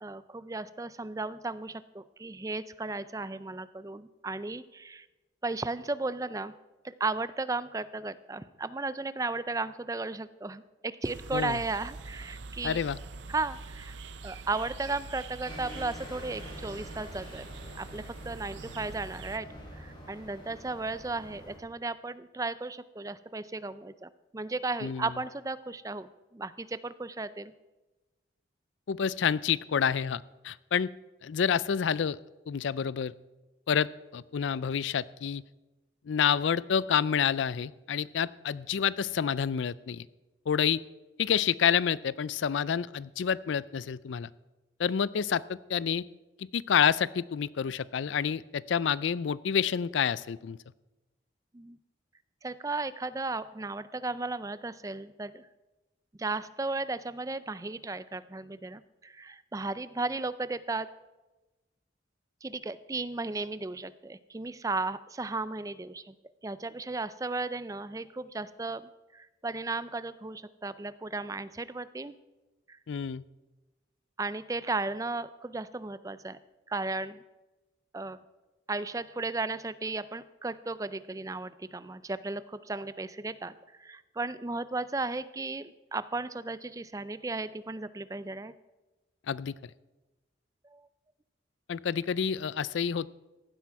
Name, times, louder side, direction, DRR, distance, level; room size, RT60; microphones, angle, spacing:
voice 1, 0.0-5.1 5.4-6.5 6.8-12.8 13.3-14.0 14.2-17.5 17.8-19.5 19.7-27.5 51.5-51.8 52.4-55.5 56.2-60.9 62.4-66.1 66.4-72.2 72.7-72.8 74.2-76.4 76.7-77.2 77.9-78.2 78.7-88.5 90.7-90.9, right 3 dB, 15° right, 15 dB, 0.4 m, -35 dB
sound 1, 11.0-19.4, right 3 dB, 75° right, 0.7 m, -44 dB
voice 2, 12.6-13.0 24.8-25.1 28.9-30.9 31.2-32.2 32.5-33.1 33.7-35.4 36.1-40.1 40.5-40.8 41.2-44.3 44.8-46.0 46.4-50.6 72.9-73.2 89.3-89.5 91.7-93.1, left 7 dB, 80° left, 20 dB, 0.4 m, -28 dB
sound 2, 15.4-21.6, equal, 25° left, 4.2 m, -47 dB
15.5 x 12.0 x 4.7 m, 1.1 s
head